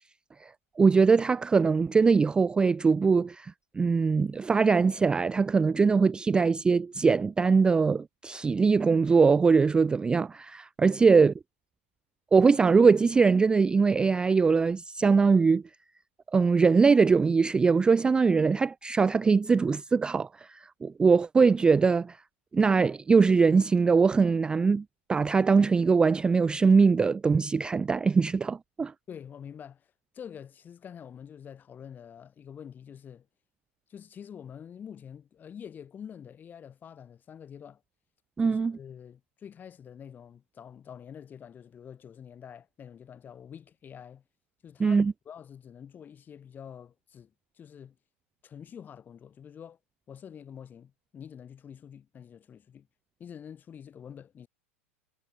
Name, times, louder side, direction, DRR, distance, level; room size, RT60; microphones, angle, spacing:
voice 1, 0.4-11.3 12.3-15.6 16.3-22.2 22.5-28.9 38.4-38.8 44.8-45.1, right 5 dB, 10° right, 0.3 m, -22 dB
voice 2, 29.1-29.9 30.1-33.3 33.9-37.8 38.4-44.2 44.6-47.9 48.4-49.8 50.1-52.9 53.2-54.5, left 8 dB, 25° left, 3.1 m, -46 dB
hypercardioid pair, 95°, 7 cm